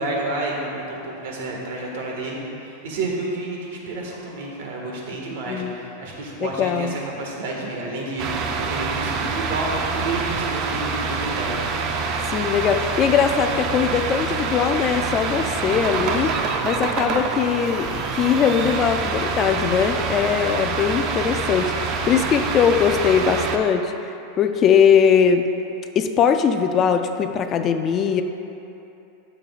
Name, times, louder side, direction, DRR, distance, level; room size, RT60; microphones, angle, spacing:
voice 1, 0.0-11.5, right 2 dB, 70° right, -2 dB, 1.7 m, -30 dB
voice 2, 6.4-6.9 12.3-23.9 24.4-25.5 26.0-28.2, left 7 dB, 30° left, 8 dB, 0.3 m, -20 dB
sound 1, 8.2-23.6, right 4 dB, 40° right, 0.6 m, -26 dB
13.0 x 6.6 x 2.4 m, 2.9 s
supercardioid pair, 145°, 0 cm